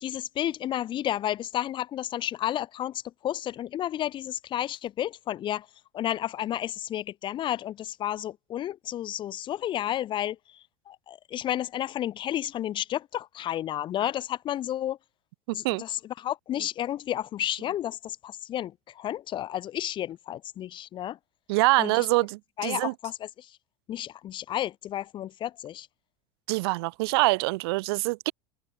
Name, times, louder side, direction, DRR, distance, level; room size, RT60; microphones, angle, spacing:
voice 1, 0.0-5.7 5.9-15.0 15.5-21.2 21.8-22.1 22.6-23.5 23.9-25.9, left 12 dB, 40° left, 0.5 m, -32 dB
voice 2, 15.5-15.8 21.5-22.9 26.5-28.3, right 24 dB, 75° right, 0.4 m, -25 dB
hypercardioid pair, 95°, 13 cm